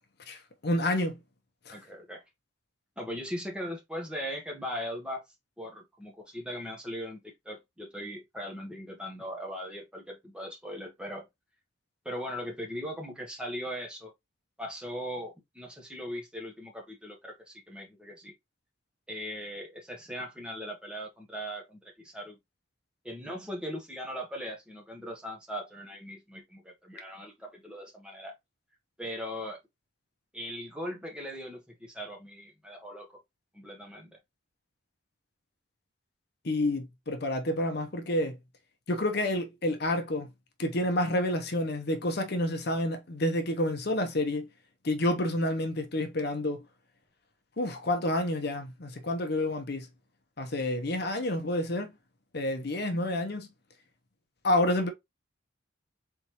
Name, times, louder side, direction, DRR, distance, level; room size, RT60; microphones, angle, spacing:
voice 1, 0.3-1.2 1.7-1.8 36.4-38.4 38.9-40.3 40.6-44.5 44.8-46.6 47.6-49.9 50.4-51.9 52.3-53.5 54.4-54.9, left 1 dB, 50° left, 0.8 m, -29 dB
voice 2, 1.7-2.2 3.0-5.2 5.6-11.2 12.0-14.1 14.6-18.3 19.1-22.4 23.0-28.3 29.0-29.6 30.3-33.1 33.5-34.2, equal, 5° right, 1.0 m, -39 dB
4.0 x 3.5 x 3.0 m
head